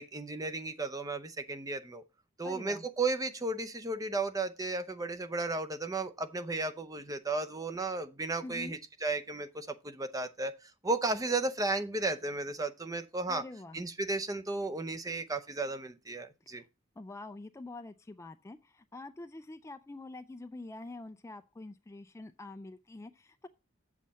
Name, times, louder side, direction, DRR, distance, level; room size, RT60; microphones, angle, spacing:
voice 1, 0.0-2.0 2.4-10.5 10.8-13.4 13.7-16.6, right 3 dB, 20° right, 0.6 m, -34 dB
voice 2, 2.4-2.8 8.4-8.8 13.3-13.8 17.0-23.5, left 2 dB, 15° left, 0.3 m, -46 dB
7.4 x 7.4 x 4.1 m
head